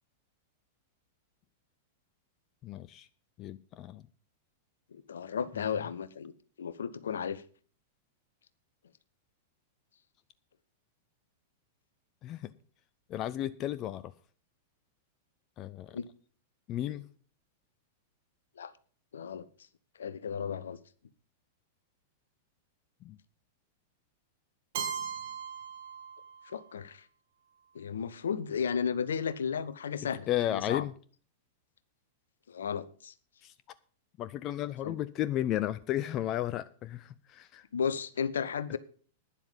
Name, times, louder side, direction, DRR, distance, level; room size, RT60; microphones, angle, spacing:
voice 1, 2.6-3.1 3.4-4.0 5.6-5.7 12.2-12.5 13.1-14.1 15.6-16.0 16.7-17.1 23.0-23.2 30.3-30.9 33.4-33.5 34.2-37.6 38.7-38.8, left 12 dB, 35° left, 16 dB, 0.5 m, -34 dB
voice 2, 4.9-6.3 6.6-7.4 15.9-16.1 16.9-17.0 18.6-18.7 19.1-19.4 20.0-20.8 26.4-27.1 27.7-30.8 32.5-33.1 34.8-35.0 37.7-38.8, left 7 dB, 65° left, 16 dB, 0.9 m, -34 dB
Keyboard (musical), 24.7-26.7, right 7 dB, 55° right, 2.3 m, -38 dB
12.0 x 10.0 x 5.4 m, 0.44 s
figure-of-eight pair, 95°, 0 cm